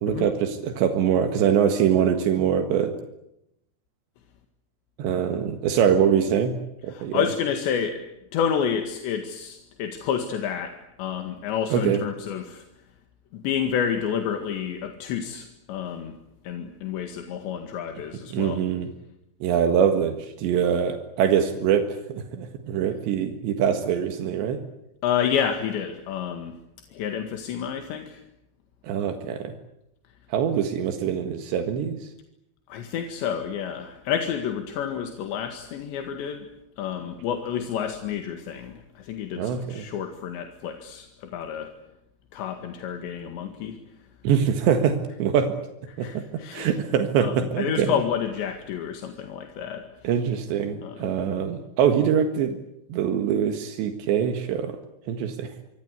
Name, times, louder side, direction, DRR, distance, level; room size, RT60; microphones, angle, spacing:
voice 1, 0.0-2.9 5.0-6.6 6.8-7.3 11.7-12.0 18.3-18.9 19.4-24.6 28.8-29.5 30.3-32.1 39.4-39.9 44.2-45.5 46.0-46.2 46.5-48.0 50.0-52.6 52.9-54.7 55.1-55.5, right 8 dB, 80° right, 7 dB, 4.0 m, -23 dB
voice 2, 6.9-8.0 8.3-12.6 13.3-16.1 16.4-18.6 25.0-26.5 26.9-28.2 32.7-36.5 36.8-41.7 42.3-43.8 46.0-46.7 47.2-49.9 50.8-51.1, left 8 dB, 85° left, 6 dB, 4.2 m, -29 dB
27.0 x 25.0 x 8.2 m, 0.83 s
omnidirectional pair, 5.0 m